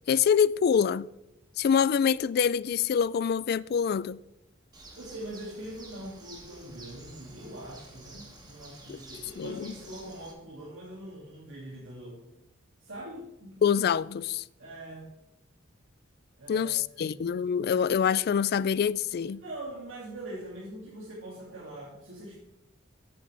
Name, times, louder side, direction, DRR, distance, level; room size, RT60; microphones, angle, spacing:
voice 1, 0.1-1.1 1.6-4.2 8.9-9.0 9.4-9.7 13.6-14.4 16.5-19.4, left 7 dB, 50° left, 0.3 m, -25 dB
Bird, 4.7-10.3, right 2 dB, 20° right, 1.8 m, -50 dB
voice 2, 4.9-12.2 12.8-13.6 14.6-15.1 16.4-17.2 19.4-22.4, right 1 dB, 75° right, 2.5 m, -42 dB
13.0 x 8.8 x 3.4 m
head